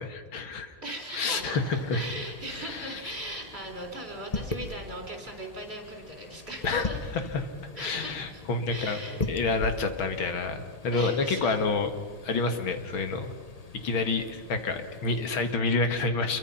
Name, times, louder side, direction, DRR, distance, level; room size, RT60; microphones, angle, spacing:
voice 1, 0.0-0.8 1.1-2.0 2.5-3.1 6.6-7.5 7.8-9.0 9.3-11.9 12.2-13.3 13.8-16.4, left 3 dB, 80° left, 7 dB, 2.5 m, -28 dB
voice 2, 0.8-7.1 7.8-8.4 8.7-9.2 10.9-11.6, right 1 dB, 30° right, 2 dB, 4.4 m, -39 dB
sound 1, 1.4-15.5, left 3 dB, 30° left, 0.7 m, -41 dB
27.5 x 23.0 x 5.8 m, 1.5 s
omnidirectional pair, 2.2 m